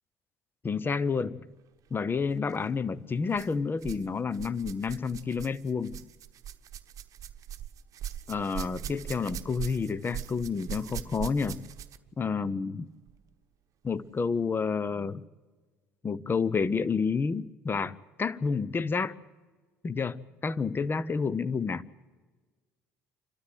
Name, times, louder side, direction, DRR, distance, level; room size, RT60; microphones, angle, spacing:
voice 1, 0.6-1.5 1.9-6.1 8.3-11.6 12.2-12.9 13.8-15.2 16.0-19.1 19.8-21.8, left 5 dB, 30° left, 0.9 m, -30 dB
sound 1, 2.4-2.6 3.3-4.1 4.3-12.1 13.1-13.2 14.0-14.1, right 10 dB, 50° right, 1.1 m, -41 dB
28.0 x 13.0 x 7.9 m
hypercardioid pair, 65°, 7 cm